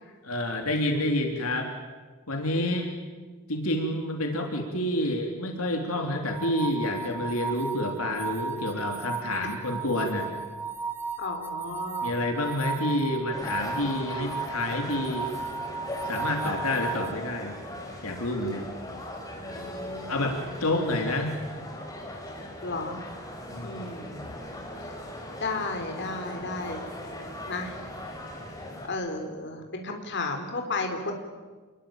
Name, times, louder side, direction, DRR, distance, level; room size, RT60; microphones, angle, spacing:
voice 1, 0.2-1.7 2.3-2.9 3.5-10.3 12.0-15.3 16.0-17.6 18.0-18.7 20.1-21.4 23.5-23.8, left 1 dB, 70° left, 3 dB, 3.5 m, -28 dB
sound 1, 6.3-17.1, right 4 dB, 10° right, 2.1 m, -35 dB
voice 2, 11.2-12.2 19.5-20.8 22.6-23.0 23.6-24.3 25.4-26.8 27.4-27.8 28.9-31.1, left 3 dB, 50° left, 4 dB, 3.7 m, -34 dB
sound 2, 13.3-28.9, left 1 dB, 15° left, 5.6 m, -39 dB
28.0 x 21.5 x 8.9 m, 1.4 s
head